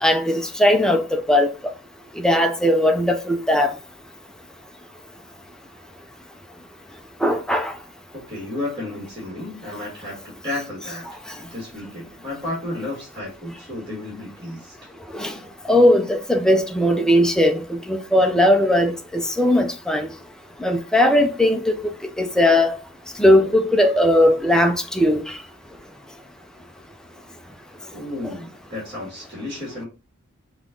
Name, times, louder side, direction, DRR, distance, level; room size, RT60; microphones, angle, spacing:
voice 1, 0.0-1.5 2.2-3.7 7.2-7.7 15.1-15.4 15.7-20.1 20.6-21.9 22.2-22.8 23.2-25.4 28.2-28.3, left 1 dB, 5° left, 0.5 m, -18 dB
voice 2, 8.3-14.7 27.9-29.9, left 2 dB, 25° right, 1.9 m, -32 dB
5.5 x 2.4 x 3.7 m
head